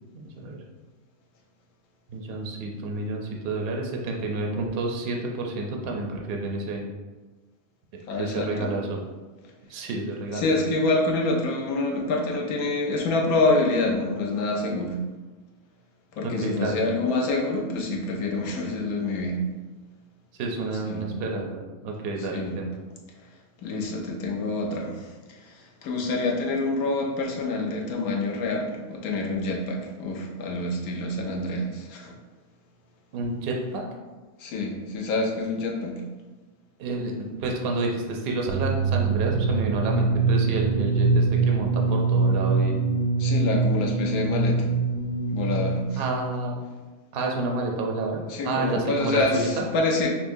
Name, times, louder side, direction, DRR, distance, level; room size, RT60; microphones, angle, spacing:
voice 1, 2.1-6.8 8.1-9.0 9.7-10.5 16.2-16.8 20.4-22.7 33.1-33.8 36.8-42.8 46.0-46.6 47.1-49.6, right 2 dB, 60° right, 1 dB, 0.6 m, -29 dB
voice 2, 8.1-8.7 10.3-15.0 16.1-19.5 20.8-21.1 22.2-22.6 23.6-32.2 34.4-36.0 43.2-44.7 45.3-46.0 48.3-50.1, left 2 dB, 80° left, 0 dB, 1.1 m, -27 dB
sound 1, 38.5-46.2, right 4 dB, 85° right, 1.1 m, -23 dB
5.7 x 2.1 x 2.6 m, 1.2 s
omnidirectional pair, 1.5 m